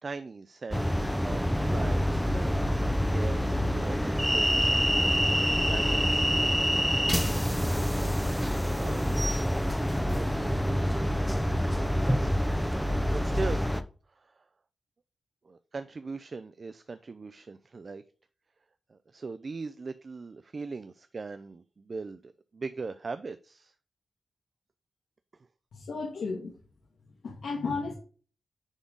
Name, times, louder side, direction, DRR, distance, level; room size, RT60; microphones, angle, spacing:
voice 1, 0.0-2.6 3.1-4.7 5.4-6.0 6.9-7.4 8.8-9.1 10.0-12.5 13.1-13.6 14.1-14.4 15.4-18.0 18.9-23.7 25.3-25.5, right 4 dB, 40° right, 11 dB, 0.4 m, -40 dB
sound 1, 0.7-13.8, equal, ahead, 0.6 m, -26 dB
voice 2, 25.7-26.5 27.2-27.9, left 4 dB, 85° left, -1 dB, 1.7 m, -33 dB
9.9 x 3.9 x 3.6 m, 0.38 s
wide cardioid pair, 135°, 0 cm